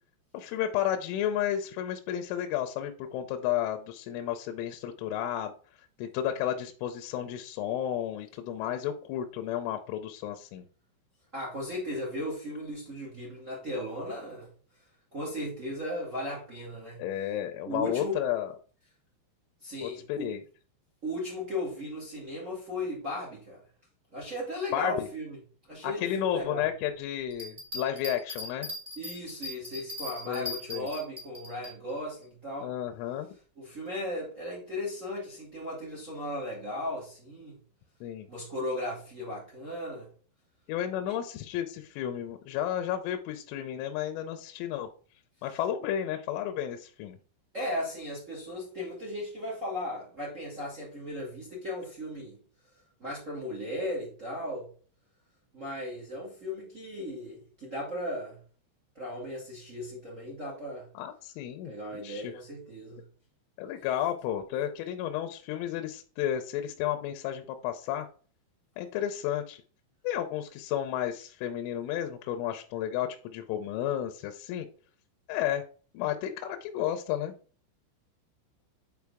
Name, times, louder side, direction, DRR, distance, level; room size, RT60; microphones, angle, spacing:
voice 1, 0.3-5.5 6.0-10.6 17.0-18.5 19.8-20.4 24.7-25.1 25.8-28.7 30.3-30.9 32.6-33.3 38.0-38.3 40.7-44.9 45.4-47.2 60.9-62.3 63.6-68.1 68.8-69.6 70.0-74.7 75.3-75.6 75.9-77.3, left 11 dB, 90° left, 3.2 m, -32 dB
voice 2, 11.3-14.5 15.1-17.0 17.6-18.2 19.6-20.3 21.0-23.6 24.1-25.4 25.7-26.7 28.9-32.7 33.5-37.6 38.3-40.1 41.0-41.2 47.5-52.4 53.0-54.7 55.5-58.4 58.9-60.9 61.6-63.0, left 1 dB, 60° right, 0.8 m, -36 dB
Bell, 27.3-31.7 32.2-32.3, left 1 dB, 20° right, 1.1 m, -39 dB
9.3 x 4.5 x 3.5 m
omnidirectional pair, 5.5 m